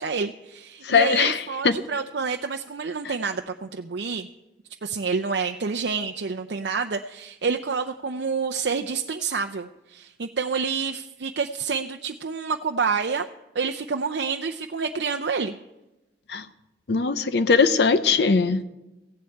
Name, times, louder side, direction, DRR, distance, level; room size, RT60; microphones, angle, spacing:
voice 1, 0.0-4.3 4.8-13.3 13.5-15.5, right 5 dB, 70° right, 5 dB, 0.6 m, -28 dB
voice 2, 0.8-1.8 3.0-3.1 16.3-16.5 16.9-18.6, left 5 dB, 65° left, 11 dB, 0.7 m, -20 dB
15.5 x 7.8 x 8.5 m, 1.0 s
head